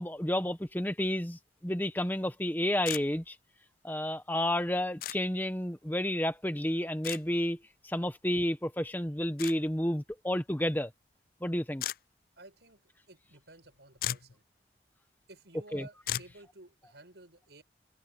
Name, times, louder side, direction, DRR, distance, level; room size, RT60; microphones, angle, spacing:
voice 1, 0.0-3.4 3.8-7.6 7.8-10.9 11.4-11.8 15.7-15.9, left 1 dB, 10° left, 1.0 m, -31 dB
sound 1, 2.9-3.0 5.0-5.2 7.0-7.2 9.4-9.6 11.8-12.0 13.6-13.7 14.0-14.3 16.1-16.3, left 12 dB, 55° left, 0.3 m, -35 dB
voice 2, 12.4-12.8 13.1-14.4 15.3-17.6, right 2 dB, 75° right, 6.7 m, -53 dB
open air
head